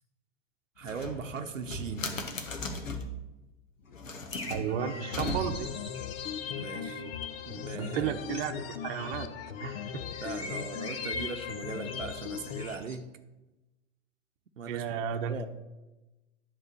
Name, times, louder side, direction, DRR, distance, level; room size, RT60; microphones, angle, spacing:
sound 1, 0.8-3.2 3.9-5.8, left 1 dB, 85° left, 1.2 m, -37 dB
voice 1, 0.8-2.2 6.5-7.0 7.5-8.4 10.2-13.1 14.6-14.8 15.3-15.5, right 5 dB, 85° right, 6 dB, 0.8 m, -39 dB
sound 2, 4.3-13.0, left 1 dB, 15° left, 1.2 m, -45 dB
voice 2, 4.5-5.7 6.6-7.1 7.8-9.3 9.6-10.0 14.7-15.4, right 8 dB, 50° right, 7 dB, 0.8 m, -34 dB
sound 3, 4.8-12.8, left 9 dB, 50° left, 0.8 m, -38 dB
10.5 x 3.6 x 6.7 m, 1.1 s
figure-of-eight pair, 95°, 38 cm